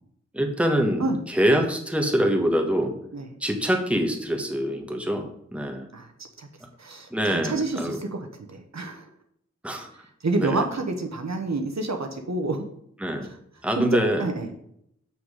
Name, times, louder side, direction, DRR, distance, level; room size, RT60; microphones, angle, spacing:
voice 1, 0.3-2.9 3.4-5.9 7.1-8.0 9.6-9.9 10.4-10.6 13.0-13.3 13.6-14.3, equal, 5° right, 3 dB, 1.3 m, -24 dB
voice 2, 6.8-9.1 10.2-12.6 13.8-14.5, right 2 dB, 65° right, 4 dB, 1.1 m, -28 dB
7.0 x 6.4 x 4.9 m, 0.72 s
wide cardioid pair, 75°, 29 cm